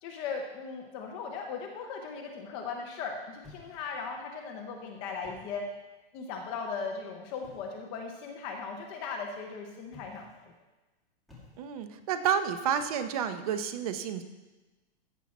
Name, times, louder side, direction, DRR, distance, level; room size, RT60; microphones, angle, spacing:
voice 1, 0.0-5.7 6.1-10.5, left 5 dB, 15° left, 2 dB, 0.5 m, -38 dB
sound 1, 3.4-4.2 5.1-5.8 7.4-7.9 9.8-10.5 11.3-12.0, left 3 dB, ahead, 1.9 m, -55 dB
voice 2, 11.6-14.2, right 8 dB, 35° right, 10 dB, 0.7 m, -30 dB
14.5 x 7.3 x 4.2 m, 1.2 s
supercardioid pair, 170°, 32 cm